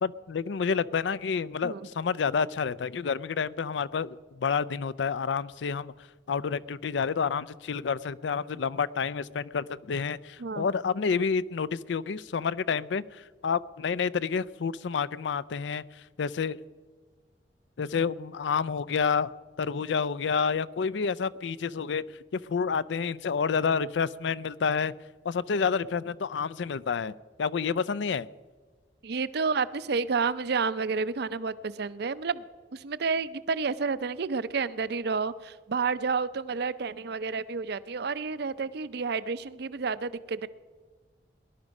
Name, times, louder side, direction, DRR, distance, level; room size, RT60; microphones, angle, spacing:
voice 1, 0.0-5.9 6.3-15.8 16.2-16.6 17.8-19.3 19.6-22.0 22.3-24.9 25.2-28.3, left 6 dB, 90° left, 18 dB, 0.4 m, -29 dB
voice 2, 29.0-32.4 32.7-40.5, right 5 dB, 65° right, 16 dB, 0.6 m, -30 dB
18.5 x 11.0 x 5.3 m, 1.4 s
head